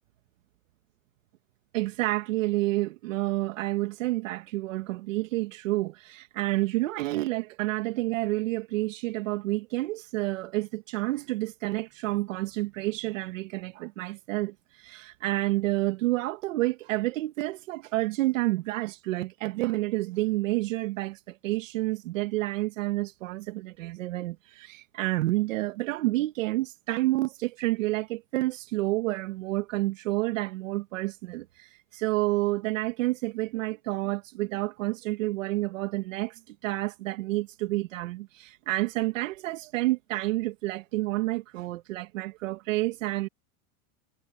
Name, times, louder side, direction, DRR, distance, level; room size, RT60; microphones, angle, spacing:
voice 1, 1.7-43.3, right 19 dB, 60° right, 1.5 m, -29 dB
supercardioid pair, 160°, 43 cm